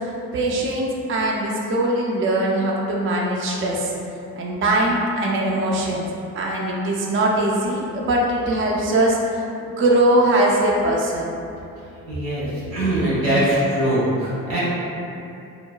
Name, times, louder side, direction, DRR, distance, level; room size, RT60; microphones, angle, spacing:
voice 1, 0.3-3.9 4.4-6.0 6.4-11.3, right 1 dB, 35° right, -3 dB, 0.4 m, -21 dB
voice 2, 12.1-14.6, right 1 dB, 85° right, -10 dB, 1.1 m, -22 dB
2.8 x 2.1 x 2.2 m, 2.7 s
supercardioid pair, 55°, 39 cm